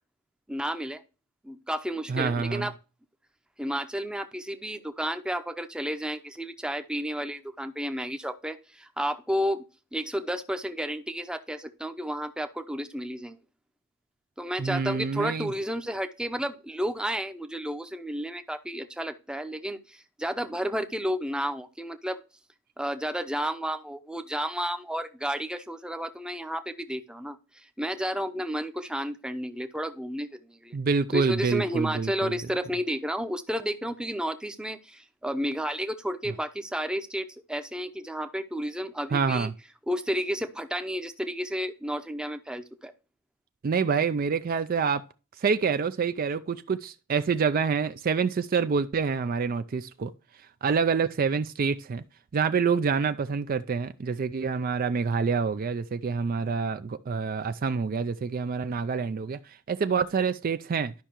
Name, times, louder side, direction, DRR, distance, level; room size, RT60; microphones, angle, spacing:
voice 1, 0.5-1.0 1.4-2.7 3.6-9.6 9.9-13.4 14.4-22.2 22.8-30.8 31.1-39.5 39.9-42.9, equal, 5° right, 0.7 m, -32 dB
voice 2, 2.1-2.7 14.6-15.5 30.7-32.3 39.1-39.5 43.6-45.0 45.4-50.1 50.6-52.0 52.3-60.9, right 5 dB, 45° right, 0.4 m, -27 dB
12.0 x 5.6 x 3.0 m
head